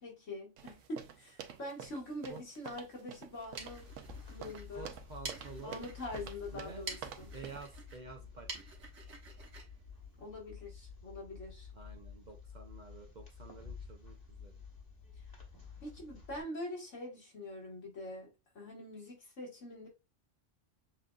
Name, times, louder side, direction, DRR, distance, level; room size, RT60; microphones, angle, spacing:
voice 1, 0.0-3.9 4.2-4.9 5.6-7.3 10.2-11.7 15.8-18.3 18.5-19.9, left 1 dB, 80° left, 2.3 m, -44 dB
sound 1, 0.6-7.7, right 8 dB, 90° right, 1.0 m, -49 dB
sound 2, 3.3-10.8, right 4 dB, 70° right, 1.5 m, -49 dB
sound 3, 3.4-16.4, left 6 dB, 20° left, 1.2 m, -51 dB
voice 2, 4.7-5.8 6.5-6.8 7.2-8.6 11.7-14.6, right 4 dB, 45° right, 0.7 m, -50 dB
7.2 x 2.5 x 2.4 m
omnidirectional pair, 1.3 m